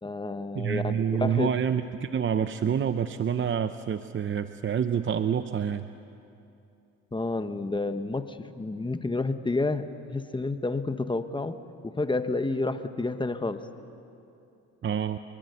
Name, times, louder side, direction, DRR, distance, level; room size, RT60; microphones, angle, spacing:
voice 1, 0.0-1.5 7.1-13.7, left 3 dB, 15° left, 9 dB, 1.2 m, -30 dB
voice 2, 0.5-5.9 14.8-15.2, right 8 dB, 40° right, 10 dB, 0.7 m, -27 dB
25.5 x 23.0 x 8.2 m, 2.7 s
cardioid pair, 90°, 30 cm